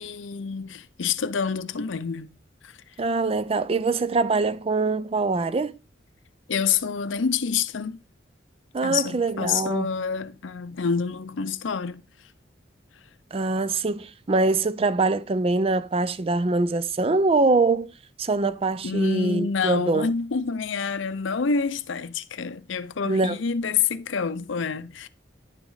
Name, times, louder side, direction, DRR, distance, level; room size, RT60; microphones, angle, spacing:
voice 1, 0.0-2.3 2.6-2.8 6.5-8.0 8.8-12.0 18.8-25.1, left 6 dB, 80° left, 0.6 m, -27 dB
voice 2, 3.0-5.8 8.7-9.9 13.3-17.9 18.2-20.1 23.1-23.4, right 3 dB, 30° right, 0.4 m, -23 dB
10.5 x 4.9 x 4.0 m
head